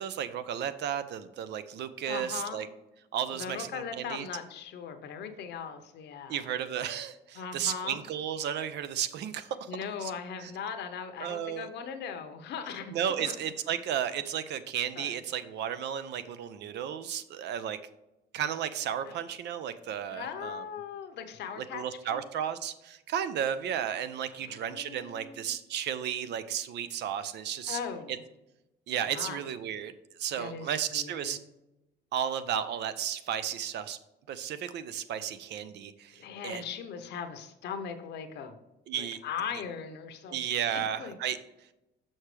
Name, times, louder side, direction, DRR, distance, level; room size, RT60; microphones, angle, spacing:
voice 1, 0.0-2.7 3.1-4.3 6.3-9.7 10.0-10.1 10.4-10.5 11.2-11.7 12.9-17.8 18.3-20.7 21.6-27.8 28.1-28.2 28.9-29.9 30.2-31.4 32.1-34.0 34.3-36.6 38.9-39.2 40.3-41.4, right 9 dB, 70° right, 12 dB, 0.6 m, -33 dB
voice 2, 2.1-2.6 3.3-6.5 7.3-8.0 9.7-13.4 14.9-15.2 19.1-19.2 20.1-21.8 22.1-22.2 24.4-25.5 27.7-28.2 29.1-29.5 30.3-31.4 36.2-38.6 38.9-40.4 40.7-41.2, left 6 dB, 75° left, 7 dB, 0.9 m, -39 dB
6.5 x 5.9 x 3.3 m, 0.96 s
cardioid pair, 120°, 18 cm